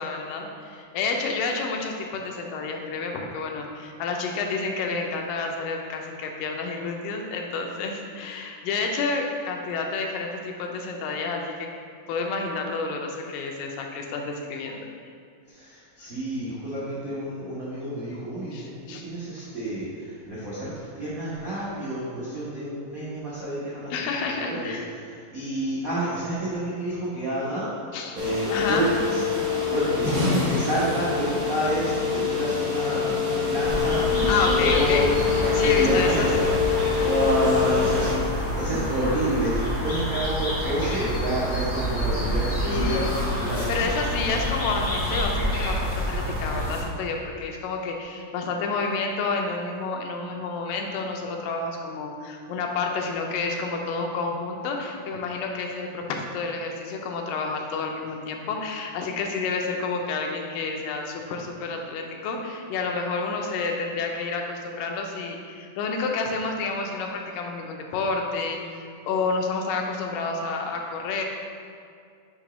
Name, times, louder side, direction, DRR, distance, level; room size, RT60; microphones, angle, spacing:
voice 1, 0.0-11.7 12.1-14.8 16.0-16.1 18.5-19.1 23.9-24.9 27.9-28.2 28.5-28.9 34.3-35.1 35.5-36.3 42.6-43.1 43.7-71.2, left 4 dB, 85° left, 2 dB, 2.3 m, -29 dB
voice 2, 15.5-24.1 24.4-27.7 28.1-29.2 29.6-35.1 35.6-36.5 37.0-44.0, right 1 dB, 80° right, -9 dB, 0.7 m, -29 dB
sound 1, 28.2-38.1, left 6 dB, 55° right, 0.9 m, -25 dB
sound 2, 33.6-46.8, equal, 65° left, 0.5 m, -28 dB
8.2 x 3.0 x 5.0 m, 2.3 s
omnidirectional pair, 3.7 m